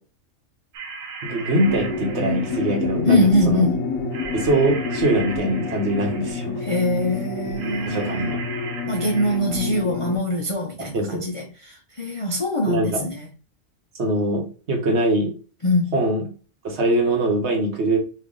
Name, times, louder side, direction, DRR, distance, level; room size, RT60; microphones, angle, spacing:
sound 1, 0.7-3.1 4.1-6.5 7.6-9.4, right 5 dB, 85° right, 1.2 m, -37 dB
voice 1, 1.2-3.7 4.3-6.6 7.9-8.4 10.8-11.2 12.7-13.1 14.0-15.3 15.9-16.3 16.6-18.0, right 1 dB, 60° right, 1.3 m, -22 dB
sound 2, 1.6-10.2, left 4 dB, 75° left, 1.3 m, -28 dB
voice 2, 3.1-3.8 6.6-8.3 8.9-13.3 15.6-16.0, left 1 dB, 45° left, 0.4 m, -23 dB
4.3 x 2.5 x 3.7 m
omnidirectional pair, 1.4 m